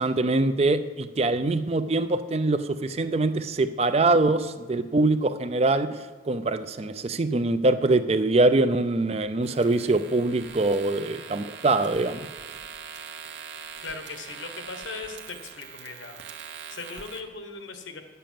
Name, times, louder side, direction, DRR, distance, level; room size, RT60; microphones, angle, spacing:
voice 1, 0.0-12.2, right 2 dB, 35° right, 12 dB, 0.4 m, -23 dB
sound 1, 9.4-17.2, right 7 dB, 70° right, 1.1 m, -42 dB
voice 2, 13.8-16.2 16.7-18.0, left 4 dB, 85° left, 6 dB, 1.3 m, -38 dB
10.0 x 6.9 x 7.6 m, 1.3 s
head